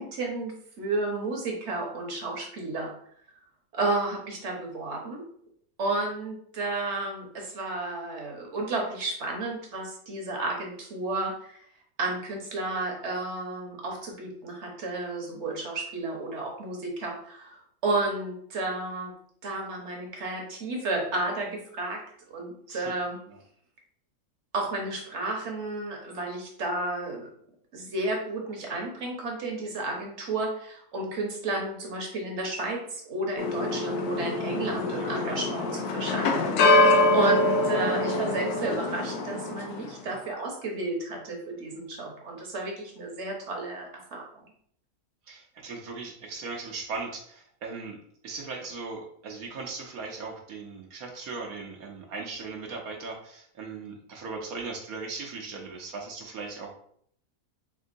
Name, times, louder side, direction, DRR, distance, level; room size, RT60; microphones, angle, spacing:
voice 1, 0.0-2.9 3.7-5.2 5.8-11.6 12.0-19.1 19.4-22.0 22.3-23.2 24.5-27.3 27.7-44.2, right 2 dB, 55° right, 0 dB, 1.1 m, -32 dB
sound 1, 33.4-39.9, left 2 dB, 90° left, 1.1 m, -24 dB
voice 2, 35.0-35.4 45.3-48.0 48.2-56.7, right 4 dB, 75° right, -1 dB, 1.1 m, -38 dB
3.7 x 3.6 x 2.5 m, 0.64 s
omnidirectional pair, 1.6 m